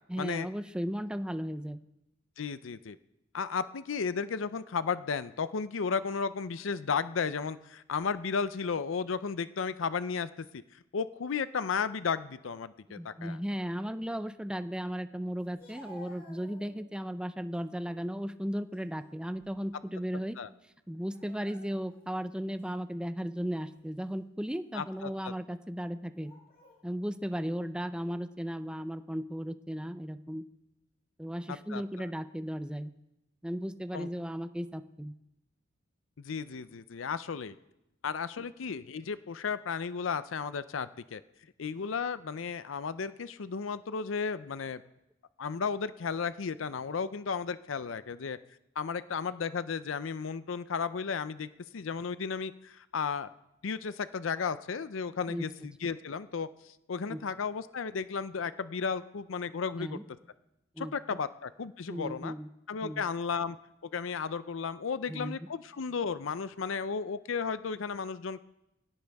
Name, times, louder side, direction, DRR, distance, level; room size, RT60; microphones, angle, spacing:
voice 1, 0.1-1.8 12.9-20.4 20.9-26.3 26.8-30.4 31.2-32.9 33.4-35.1 55.3-55.5 57.1-57.2 59.8-60.0 60.8-60.9 61.9-62.5 62.8-63.0 65.1-65.5, equal, 5° right, 10 dB, 0.6 m, -36 dB
voice 2, 2.4-3.0 3.3-10.6 10.9-13.4 20.4-20.5 24.7-25.3 31.5-32.1 33.9-34.1 36.2-37.6 38.0-41.2 41.6-44.8 45.4-48.4 48.8-53.3 53.6-60.0 60.8-62.3 62.7-63.6 63.9-68.4, left 5 dB, 80° left, 14 dB, 0.5 m, -34 dB
Speech, 15.4-17.0 17.5-18.1 18.6-19.8 20.0-20.2 21.0-22.0 22.6-22.7 23.5-23.8 24.5-25.2 26.1-26.8, left 1 dB, 50° left, 5.2 m, -55 dB
23.0 x 17.0 x 3.5 m, 0.90 s
head